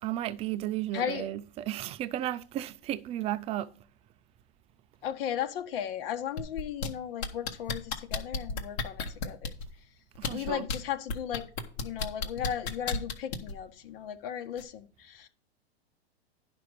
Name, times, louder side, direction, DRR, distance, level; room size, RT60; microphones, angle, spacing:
voice 1, 0.0-3.7 10.2-10.7, right 13 dB, 20° right, 0.4 m, -34 dB
voice 2, 0.9-1.3 5.0-9.5 10.3-11.5 11.8-15.3, left 9 dB, 60° left, 1.5 m, -36 dB
sound 1, 6.4-6.9 7.2-9.7 10.2-10.8 11.1-13.5 14.6-14.7, left 4 dB, 75° left, 1.8 m, -32 dB
10.5 x 6.0 x 4.8 m
hypercardioid pair, 130°, 32 cm